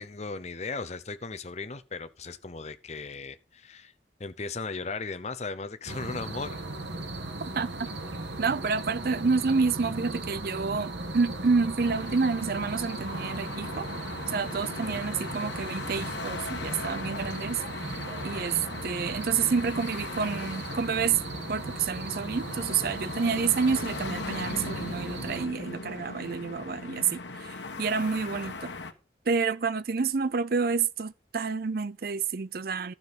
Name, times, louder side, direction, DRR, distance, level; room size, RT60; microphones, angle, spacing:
voice 1, 0.0-3.9 4.2-6.6 14.7-15.1, left 4 dB, 35° left, 0.7 m, -37 dB
sound 1, 5.8-25.5, right 2 dB, 75° right, 1.5 m, -37 dB
voice 2, 8.4-13.9 14.3-17.6 18.2-21.2 21.5-28.7 29.3-32.9, right 5 dB, 55° right, 0.5 m, -28 dB
sound 2, 11.8-28.9, left 3 dB, 80° left, 1.2 m, -39 dB
12.0 x 6.1 x 5.2 m
head